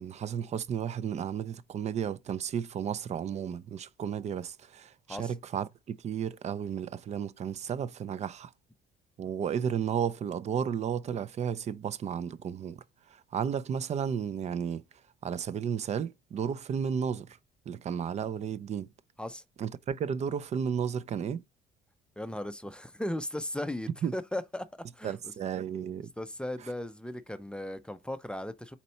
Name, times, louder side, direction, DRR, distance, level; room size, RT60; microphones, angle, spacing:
voice 1, 0.0-8.5 9.2-12.8 13.3-14.8 15.2-17.3 17.7-18.9 19.6-21.4 24.0-24.1 25.0-26.1, right 8 dB, 40° right, 0.5 m, -33 dB
voice 2, 22.2-24.7 24.9-25.2 26.2-28.8, left 1 dB, 5° left, 0.5 m, -36 dB
4.3 x 4.0 x 5.6 m
cardioid pair, 110°, 17 cm